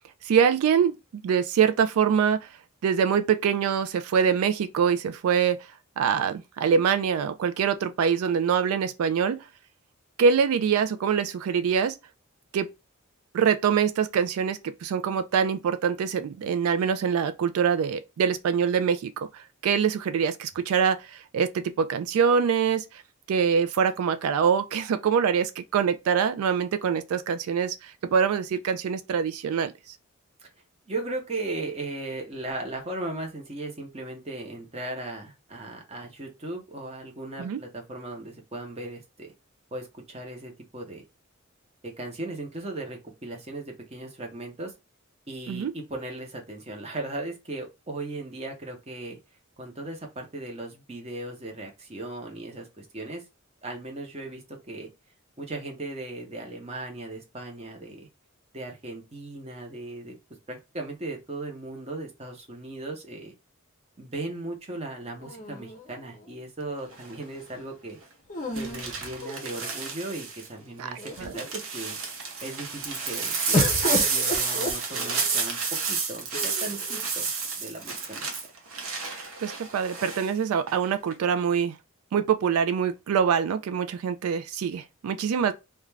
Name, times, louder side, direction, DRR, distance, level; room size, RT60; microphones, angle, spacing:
voice 1, 0.2-2.5 2.8-5.6 6.0-9.4 10.2-12.0 12.5-12.7 13.3-23.0 23.3-30.0 37.4-37.6 45.5-45.7 70.8-70.9 71.2-71.3 79.4-81.8 82.1-85.5, right 7 dB, 90° right, 0.3 m, -24 dB
voice 2, 30.9-39.3 39.7-41.0 41.8-44.7 45.3-49.2 49.6-53.2 53.6-54.9 55.4-58.1 58.5-60.1 60.5-63.3 64.0-68.0 68.5-72.0 72.4-75.6 75.9-77.3 77.6-78.3, right 2 dB, 30° right, 0.7 m, -37 dB
sound 1, 65.2-66.3 68.3-69.8 70.6-70.7 71.0-71.6 73.5-75.4 76.3-77.0, left 2 dB, 35° left, 0.6 m, -32 dB
sound 2, 66.9-67.2 68.6-70.5 71.0-80.3 80.7-81.1, right 5 dB, 70° right, 0.8 m, -30 dB
2.4 x 2.2 x 3.1 m
head